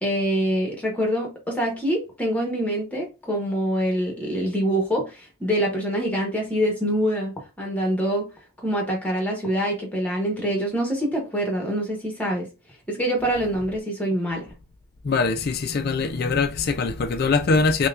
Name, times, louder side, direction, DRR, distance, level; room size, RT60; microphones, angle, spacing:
voice 1, 0.0-8.3 8.6-12.5 12.9-14.5, equal, 5° left, 1.0 m, -25 dB
voice 2, 15.0-17.9, left 4 dB, 45° left, 0.3 m, -22 dB
5.4 x 2.3 x 2.4 m
head